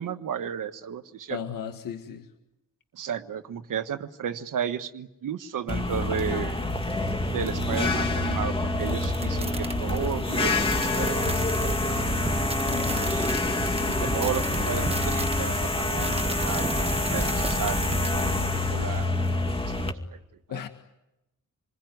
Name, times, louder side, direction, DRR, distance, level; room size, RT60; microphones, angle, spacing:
voice 1, 0.0-1.4 2.9-6.6 7.3-11.3 11.6-12.1 12.3-12.4 13.1-13.3 13.9-17.8 18.1-19.1 19.5-19.8 20.1-20.2, right 8 dB, 70° right, 9 dB, 1.4 m, -33 dB
voice 2, 1.3-2.3 12.6-13.2 20.5-20.7, left 8 dB, 85° left, 6 dB, 1.9 m, -36 dB
sound 1, 5.7-19.9, left 2 dB, 15° left, 2.3 m, -27 dB
sound 2, 8.8-18.4, right 3 dB, 20° right, 1.4 m, -34 dB
28.5 x 21.0 x 9.5 m, 0.92 s
cardioid pair, 105°, 33 cm